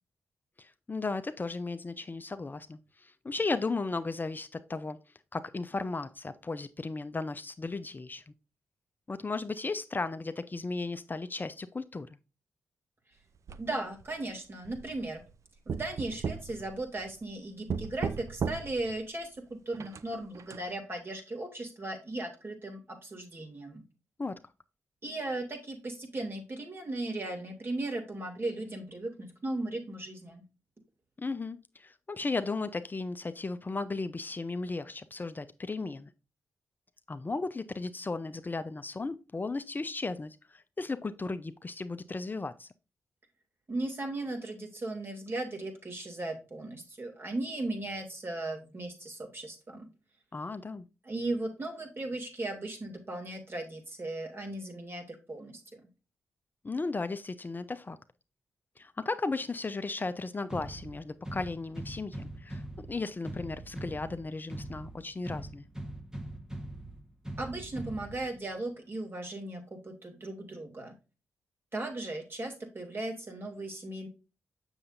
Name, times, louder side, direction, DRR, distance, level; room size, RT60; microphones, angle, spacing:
voice 1, 0.6-5.0 5.3-8.3 9.1-12.1 24.2-24.4 31.2-36.1 37.1-42.7 50.3-50.9 56.6-58.0 58.8-62.6 62.9-65.7, left 3 dB, 30° left, 0.6 m, -35 dB
sound 1, 13.5-14.1 14.6-15.3 15.7-17.3 17.7-19.0 19.7-20.6, right 6 dB, 60° right, 0.5 m, -37 dB
voice 2, 13.6-15.2 15.7-23.8 25.0-30.4 43.7-49.9 51.0-55.8 67.4-70.9 71.7-74.1, right 2 dB, 40° right, 2.9 m, -37 dB
sound 2, 60.5-68.5, right 1 dB, 10° right, 1.4 m, -42 dB
7.1 x 6.8 x 2.6 m
supercardioid pair, 45°, 6 cm